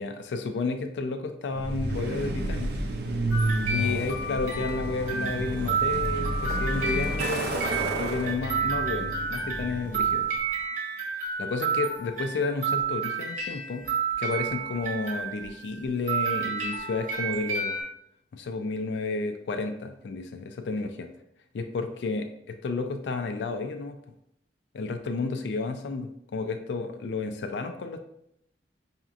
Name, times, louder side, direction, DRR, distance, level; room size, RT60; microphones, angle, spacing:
voice 1, 0.0-2.7 3.7-7.6 8.0-10.3 11.4-13.8 14.2-17.8 18.3-21.1 21.5-24.0 24.7-28.0, left 3 dB, 75° left, 7 dB, 0.4 m, -31 dB
Truck, 1.5-10.3, right 1 dB, 65° right, 0.5 m, -31 dB
sound 1, 3.3-15.8 16.1-17.8, right 5 dB, 45° right, 1.1 m, -30 dB
5.8 x 2.8 x 2.4 m, 0.76 s
head